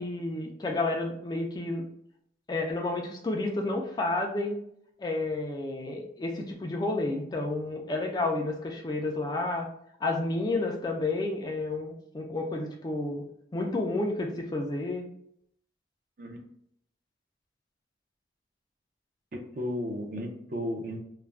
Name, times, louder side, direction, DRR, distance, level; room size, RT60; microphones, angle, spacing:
voice 1, 0.0-1.8 2.5-4.6 5.0-9.7 10.0-13.2 13.5-15.0, left 2 dB, 25° left, 1 dB, 0.3 m, -30 dB
voice 2, 19.3-21.0, left 1 dB, 50° right, 2 dB, 0.5 m, -34 dB
2.4 x 2.1 x 3.2 m, 0.71 s
head